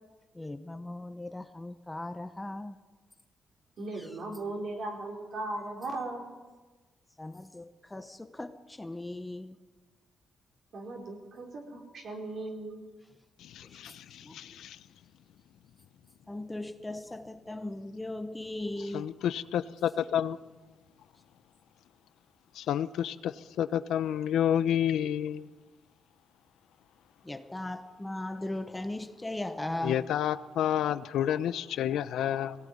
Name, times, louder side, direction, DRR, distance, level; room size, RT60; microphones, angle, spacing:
voice 1, 0.3-2.8 3.9-4.2 7.2-9.6 13.7-13.9 14.2-14.4 16.3-19.1 27.2-30.1, left 1 dB, 10° left, 9 dB, 1.0 m, -38 dB
voice 2, 3.8-6.3 10.7-12.8, right 2 dB, 50° right, 1 dB, 5.1 m, -37 dB
voice 3, 13.5-14.8 18.9-20.4 22.6-23.3 23.6-25.4 29.8-32.6, left 10 dB, 90° left, 14 dB, 0.8 m, -29 dB
22.5 x 17.5 x 9.7 m, 1.3 s
cardioid pair, 135°, 0 cm